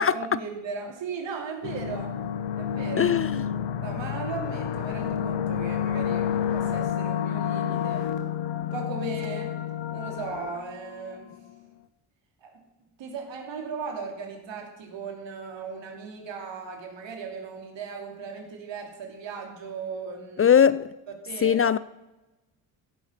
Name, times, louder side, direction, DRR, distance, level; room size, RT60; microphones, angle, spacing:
voice 1, 0.0-2.1 2.6-3.2 3.8-8.1 8.6-9.5 9.9-11.3 12.4-12.6 13.0-20.5 21.2-21.6, right 5 dB, 70° right, 3.1 m, -37 dB
sound 1, 1.6-11.4, left 9 dB, 65° left, 1.0 m, -30 dB
voice 2, 3.0-3.4 20.4-20.9 21.4-21.8, left 8 dB, 30° left, 0.4 m, -20 dB
16.0 x 6.3 x 6.6 m
supercardioid pair, 65°, 46 cm